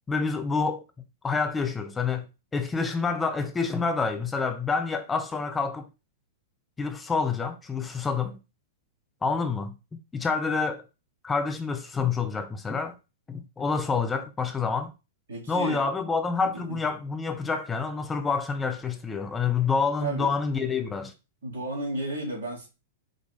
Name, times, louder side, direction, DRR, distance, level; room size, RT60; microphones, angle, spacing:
voice 1, 0.1-0.8 1.2-5.9 6.8-8.4 9.2-9.7 10.1-10.9 11.2-12.9 13.3-14.9 15.5-21.1, left 5 dB, 15° left, 0.5 m, -28 dB
voice 2, 15.3-15.8 16.5-16.8 20.0-20.3 21.4-22.7, right 1 dB, 70° right, 2.2 m, -33 dB
5.0 x 2.4 x 3.6 m
figure-of-eight pair, 100°, 0 cm